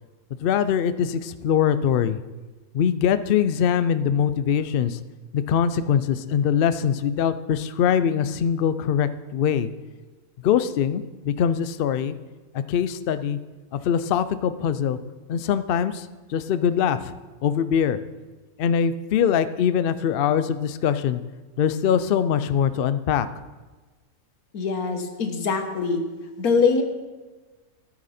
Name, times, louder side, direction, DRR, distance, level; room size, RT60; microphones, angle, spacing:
voice 1, 0.4-2.2 2.7-5.0 5.3-9.7 10.4-12.1 12.7-13.4 13.8-15.0 15.3-16.1 16.3-17.1 17.4-18.0 18.6-21.2 21.6-23.3, left 8 dB, 65° left, 13 dB, 0.5 m, -22 dB
voice 2, 24.5-26.0 26.4-26.8, left 5 dB, 90° left, 6 dB, 1.6 m, -23 dB
13.0 x 8.9 x 4.3 m, 1.3 s
omnidirectional pair, 1.5 m